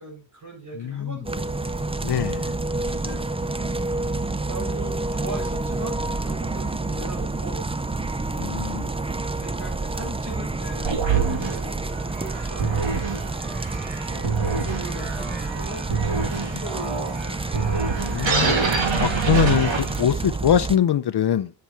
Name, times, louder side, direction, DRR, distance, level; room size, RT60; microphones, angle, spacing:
voice 1, 0.0-1.5 2.8-3.2 4.5-7.6 8.3-11.9 12.2-13.0 14.4-17.5, right 2 dB, 40° right, 7.2 m, -39 dB
voice 2, 0.8-1.2 2.0-2.5 8.3-8.9 18.1-18.6 19.0-21.5, left 9 dB, 60° left, 0.6 m, -23 dB
sound 1, 1.2-20.8, right 2 dB, 15° right, 0.5 m, -29 dB
sound 2, 10.8-20.3, right 5 dB, 85° right, 2.4 m, -26 dB
10.0 x 6.9 x 4.6 m
wide cardioid pair, 105°, 45 cm